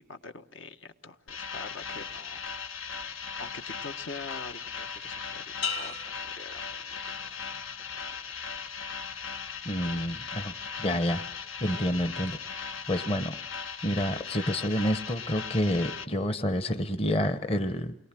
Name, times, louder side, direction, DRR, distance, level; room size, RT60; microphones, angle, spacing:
voice 1, 0.0-2.4 3.4-7.4 7.9-8.1, left 3 dB, 70° left, 7 dB, 1.3 m, -45 dB
sound 1, 1.3-16.0, left 6 dB, 90° left, 1.6 m, -38 dB
sound 2, 5.6-7.4 7.9-8.4, left 6 dB, 50° left, 2.9 m, -38 dB
voice 2, 9.6-11.2 11.6-13.4 13.8-18.0, equal, 30° left, 10 dB, 0.9 m, -29 dB
29.0 x 22.0 x 7.6 m, 0.79 s
head